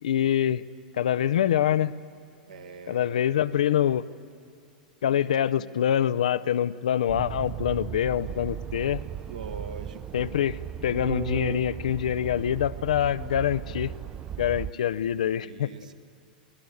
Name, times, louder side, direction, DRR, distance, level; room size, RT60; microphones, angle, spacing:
voice 1, 0.0-0.6 0.9-1.9 2.9-4.0 5.0-9.0 10.1-10.6 10.8-13.9 14.4-15.7, left 10 dB, 60° left, 15 dB, 0.5 m, -25 dB
voice 2, 2.5-3.2 9.2-10.3 15.4-15.9, right 5 dB, 65° right, 7 dB, 1.4 m, -42 dB
sound 1, 7.1-14.7, right 10 dB, 25° right, 0.5 m, -36 dB
24.0 x 18.5 x 9.3 m, 2.4 s
figure-of-eight pair, 95°, 4 cm